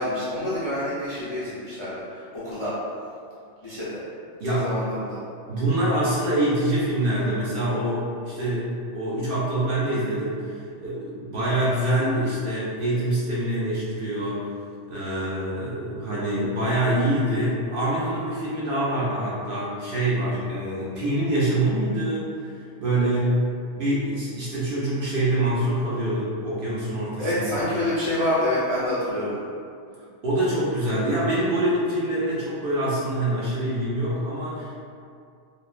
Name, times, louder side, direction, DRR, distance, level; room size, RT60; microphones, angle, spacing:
voice 1, 0.0-2.7 3.6-4.0 4.4-5.2 27.2-29.4, left 1 dB, 45° left, -12 dB, 0.4 m, -27 dB
voice 2, 4.4-4.7 5.5-14.5 14.9-23.4 23.7-27.6 30.2-34.8, right 1 dB, 60° right, -7 dB, 0.6 m, -25 dB
3.0 x 2.0 x 2.4 m, 2.3 s
omnidirectional pair, 1.2 m